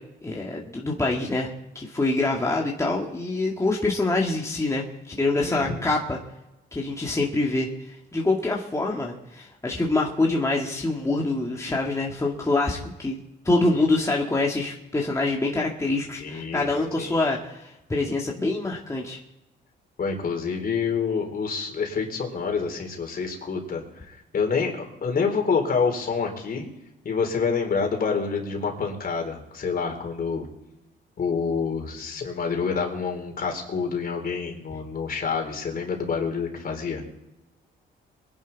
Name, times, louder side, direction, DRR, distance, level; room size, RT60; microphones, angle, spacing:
voice 1, 0.2-6.2 6.7-13.2 13.4-19.2, left 2 dB, 15° left, -2 dB, 2.2 m, -25 dB
voice 2, 5.4-5.8 16.2-16.7 17.0-17.2 20.0-26.7 27.0-30.5 31.2-37.0, left 5 dB, 50° left, 3 dB, 3.9 m, -27 dB
22.5 x 11.0 x 4.1 m, 0.94 s
cardioid pair, 90°, 20 cm